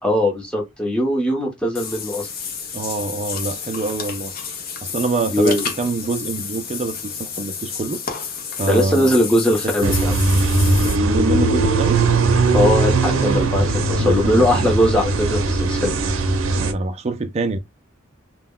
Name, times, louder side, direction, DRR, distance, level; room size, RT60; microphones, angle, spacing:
voice 1, 0.0-2.3 5.3-5.7 8.6-10.2 12.5-15.9, left 1 dB, 5° left, 0.8 m, -20 dB
Water / Bathtub (filling or washing), 1.8-11.0, left 6 dB, 45° left, 0.6 m, -31 dB
voice 2, 2.7-4.3 4.8-8.0 8.6-9.4 9.8-9.9 10.8-12.1 14.0-14.7 16.5-17.6, right 3 dB, 30° right, 0.4 m, -25 dB
sound 1, 9.8-16.7, right 3 dB, 80° right, 0.6 m, -19 dB
2.3 x 2.1 x 3.6 m
head